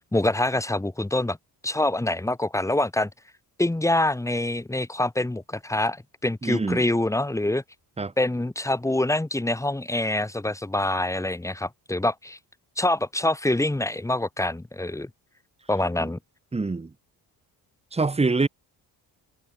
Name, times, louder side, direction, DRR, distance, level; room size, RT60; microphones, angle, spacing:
voice 1, 0.1-1.4 1.6-3.1 3.6-7.6 8.2-12.4 12.8-15.1 15.7-16.2, left 1 dB, 5° left, 3.6 m, -25 dB
voice 2, 6.4-6.8 8.0-8.1 16.0-16.1 16.5-16.9 17.9-18.5, right 3 dB, 15° right, 4.9 m, -25 dB
cardioid pair, 175°, 40 cm